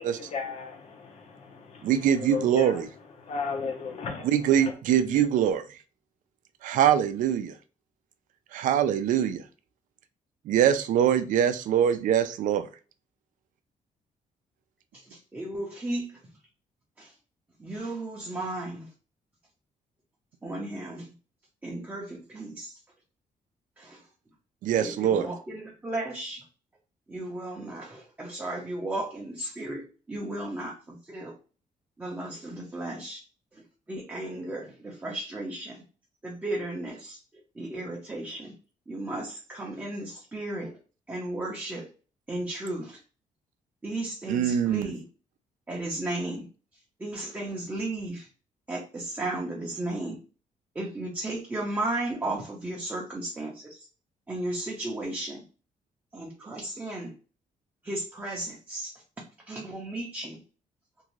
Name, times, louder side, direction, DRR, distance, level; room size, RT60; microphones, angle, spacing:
voice 1, 0.0-2.8 3.2-4.7, left 5 dB, 50° left, 0.7 m, -36 dB
voice 2, 1.8-2.9 4.2-5.6 6.6-7.5 8.5-9.4 10.5-12.7 24.6-25.3 44.3-44.9, right 9 dB, 70° right, 0.4 m, -23 dB
voice 3, 15.1-16.2 17.0-17.1 17.6-18.9 20.4-21.1 21.6-22.8 23.8-24.0 24.8-26.4 27.1-31.3 32.0-33.2 33.5-33.6 33.9-35.8 36.2-37.2 37.6-38.5 38.9-40.7 41.1-41.9 42.3-43.0 43.8-45.0 45.7-46.4 47.0-48.3 48.7-50.2 50.7-53.9 54.3-55.4 56.1-57.1 57.8-58.9 59.5-60.4, right 2 dB, 10° right, 0.6 m, -34 dB
2.6 x 2.4 x 3.0 m
cardioid pair, 170°, 14 cm